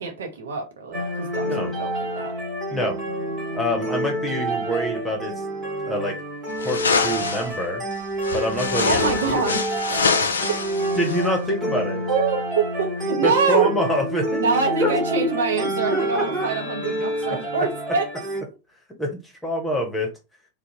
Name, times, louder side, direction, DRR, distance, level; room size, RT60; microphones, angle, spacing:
voice 1, 0.0-2.3 8.9-10.2 12.1-12.4 12.8-13.7 14.4-18.0, right 4 dB, 65° right, 0.7 m, -25 dB
sound 1, 0.9-18.4, right 1 dB, 25° right, 1.3 m, -28 dB
voice 2, 3.5-5.3 5.8-6.2 6.6-7.8 8.3-9.6 11.0-12.0 13.2-14.4 14.8-15.0 15.9-16.5 19.0-20.1, equal, 5° left, 0.8 m, -26 dB
sound 2, 6.6-7.5 8.2-11.3, left 5 dB, 70° left, 0.3 m, -25 dB
2.6 x 2.0 x 2.7 m
figure-of-eight pair, 90°, 0 cm